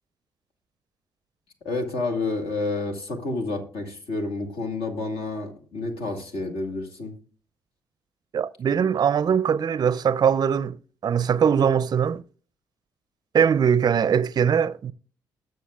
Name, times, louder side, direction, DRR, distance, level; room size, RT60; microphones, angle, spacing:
voice 1, 1.6-7.1, left 3 dB, 65° left, 2.0 m, -29 dB
voice 2, 8.3-10.8 11.0-12.2 13.3-14.9, right 7 dB, 40° right, 0.4 m, -21 dB
19.0 x 6.5 x 2.3 m
hypercardioid pair, 45°, 10 cm